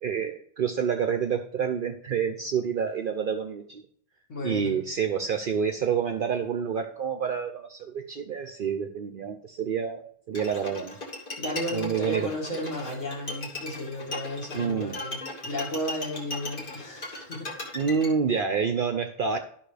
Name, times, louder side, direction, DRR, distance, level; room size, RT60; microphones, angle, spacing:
voice 1, 0.0-3.8 4.4-11.0 11.7-12.3 14.5-15.0 17.7-19.4, right 6 dB, 55° right, 7 dB, 0.6 m, -28 dB
voice 2, 4.3-4.8 11.4-17.5, equal, 80° left, -2 dB, 2.6 m, -33 dB
Bowed string instrument, 10.3-18.1, left 2 dB, 45° left, 1.5 m, -37 dB
11.5 x 5.4 x 3.3 m, 0.64 s
omnidirectional pair, 1.3 m